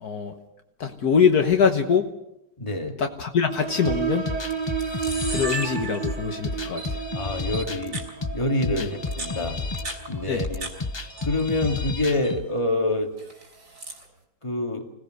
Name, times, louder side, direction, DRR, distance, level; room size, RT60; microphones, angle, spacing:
voice 1, 0.0-0.3 0.8-2.1 3.0-4.2 5.3-7.0 8.8-8.9 10.3-10.4, left 6 dB, 65° left, 5 dB, 1.7 m, -23 dB
voice 2, 2.6-3.0 7.1-8.0 8.3-9.6 10.1-10.7 11.2-13.1 14.4-14.9, left 2 dB, 15° left, 3 dB, 2.3 m, -26 dB
sound 1, 3.5-10.8, right 7 dB, 30° right, 0.9 m, -33 dB
Camera, 3.6-3.9 4.5-4.6 4.8-6.4 6.8-6.9 7.5-8.1 8.9-10.7 11.0-11.7 12.0-12.4 13.2-14.0, right 2 dB, 70° right, 5.1 m, -35 dB
sound 2, 3.8-12.4, left 3 dB, 45° left, 0.3 m, -32 dB
25.5 x 17.5 x 6.5 m, 0.84 s
omnidirectional pair, 1.8 m